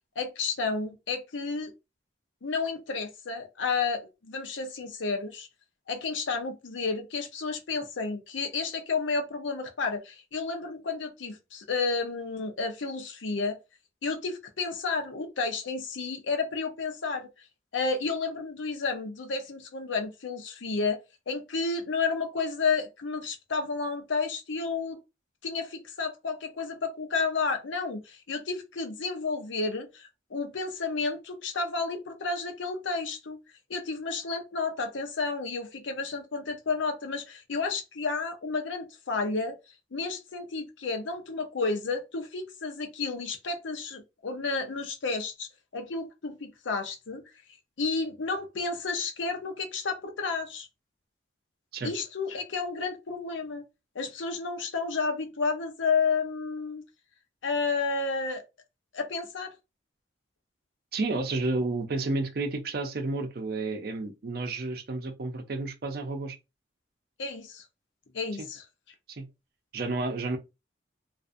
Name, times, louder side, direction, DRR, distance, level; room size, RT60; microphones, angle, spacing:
voice 1, 0.2-1.7 2.4-5.5 5.9-13.6 14.0-17.3 17.7-21.0 21.3-25.0 25.4-33.4 33.7-39.6 39.9-47.2 47.8-50.7 51.8-53.6 53.9-56.8 57.4-58.4 58.9-59.5 67.2-67.6 68.1-68.6, left 4 dB, 85° left, 0.6 m, -31 dB
voice 2, 60.9-66.4 68.4-68.5 69.1-69.3 69.7-70.4, right 3 dB, 55° right, 0.5 m, -31 dB
2.5 x 2.4 x 2.5 m
head